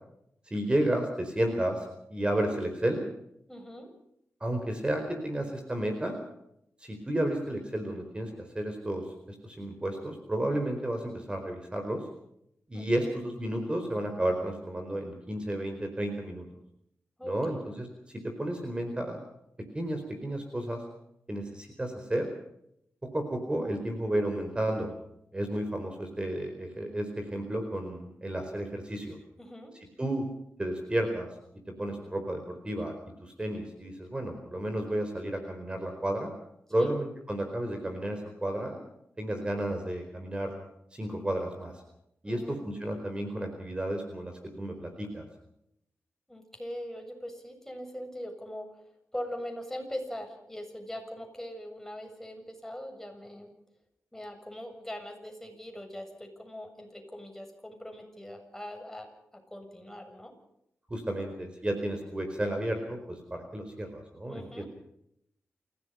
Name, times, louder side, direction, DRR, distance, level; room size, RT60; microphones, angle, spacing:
voice 1, 0.4-1.8 2.1-3.0 4.4-6.1 6.8-9.1 9.4-12.0 12.7-16.5 17.2-19.2 19.7-20.8 21.3-22.3 23.1-24.9 25.3-29.2 30.0-30.3 30.6-31.3 31.8-33.0 33.2-36.3 36.7-38.8 39.2-40.6 40.9-41.7 42.2-45.3 60.9-64.6, right 1 dB, 20° right, 5 dB, 4.5 m, -32 dB
voice 2, 3.5-3.9 12.7-13.1 17.2-17.7 29.4-29.7 36.8-37.0 42.2-42.6 46.3-48.7 49.1-53.5 54.1-59.1 59.5-60.3 64.3-64.7, equal, 5° left, 3 dB, 7.3 m, -41 dB
29.0 x 17.0 x 5.8 m, 0.77 s
wide cardioid pair, 95°, 5 cm